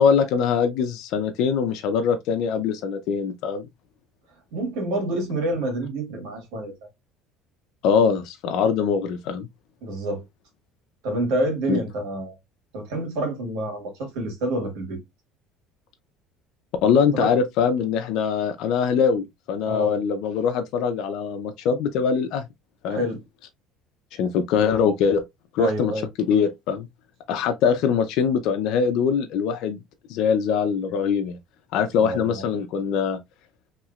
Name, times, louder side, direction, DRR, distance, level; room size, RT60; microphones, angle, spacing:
voice 1, 0.0-3.7 7.8-9.5 11.7-11.8 16.8-22.5 22.8-23.0 24.1-25.2 25.5-25.9 26.3-26.9 27.3-29.8 30.1-31.4 31.7-33.2, left 6 dB, 65° left, 0.5 m, -22 dB
voice 2, 4.5-6.7 9.8-10.2 11.0-12.4 12.7-15.0 17.1-17.3 19.7-20.0 22.9-23.2 25.6-26.1 31.9-32.5, right 1 dB, 80° right, 1.6 m, -28 dB
3.0 x 2.8 x 2.4 m
cardioid pair, 130°, 0 cm